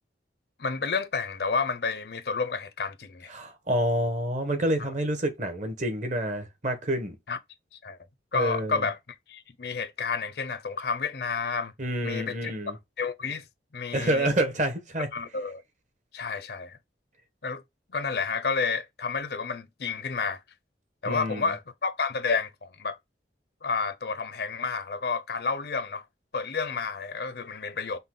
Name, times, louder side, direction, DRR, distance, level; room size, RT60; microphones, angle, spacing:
voice 1, 0.6-3.3 4.8-4.9 7.3-7.4 7.7-8.0 8.3-9.0 9.3-11.7 12.0-12.5 13.0-13.4 13.7-14.3 15.1-15.6 16.1-16.8 17.4-17.6 17.9-20.4 21.0-23.0 23.6-26.0 26.3-28.0, left 5 dB, 60° left, 0.6 m, -30 dB
voice 2, 3.3-7.2 8.3-8.8 11.8-12.7 13.9-15.1 21.0-21.5, right 1 dB, 40° right, 1.1 m, -28 dB
5.4 x 2.3 x 3.6 m
head